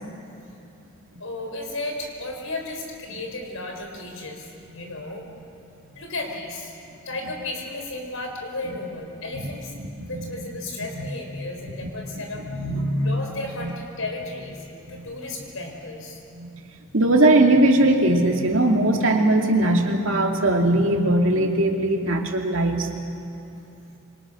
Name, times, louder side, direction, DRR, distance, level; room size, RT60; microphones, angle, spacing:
voice 1, 1.2-5.2 5.9-6.7 7.0-9.7 10.1-12.5 13.0-16.2, left 2 dB, 70° left, 2 dB, 4.8 m, -34 dB
voice 2, 9.7-10.1 11.0-11.1 12.5-13.1 13.6-13.7 14.9-15.0 16.4-16.5 16.9-22.9, right 1 dB, 65° right, 2 dB, 2.5 m, -20 dB
26.5 x 26.0 x 6.3 m, 2.7 s
head